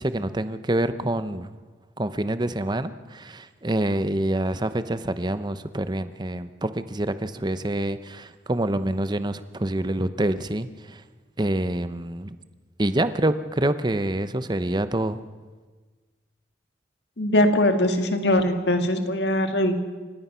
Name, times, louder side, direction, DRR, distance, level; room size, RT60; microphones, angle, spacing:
voice 1, 0.0-1.6 2.0-11.0 11.4-12.3 12.8-15.2, right 1 dB, 25° right, 12 dB, 0.8 m, -26 dB
voice 2, 17.2-19.8, left 1 dB, 65° left, 6 dB, 1.9 m, -21 dB
29.0 x 15.5 x 5.7 m, 1.4 s
head